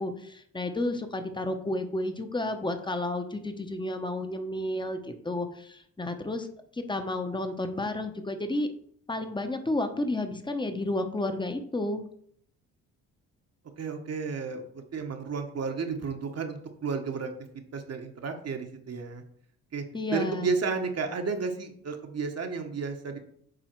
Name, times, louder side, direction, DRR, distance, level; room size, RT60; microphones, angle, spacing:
voice 1, 0.0-5.0 5.2-6.5 6.7-8.7 9.1-12.0 19.9-20.5, left 2 dB, 15° left, 7 dB, 1.1 m, -31 dB
voice 2, 13.8-17.3 17.7-19.2 19.7-19.8 20.1-23.2, right 5 dB, 45° right, 4 dB, 1.2 m, -32 dB
7.8 x 3.5 x 4.6 m, 0.65 s
supercardioid pair, 60°, 36 cm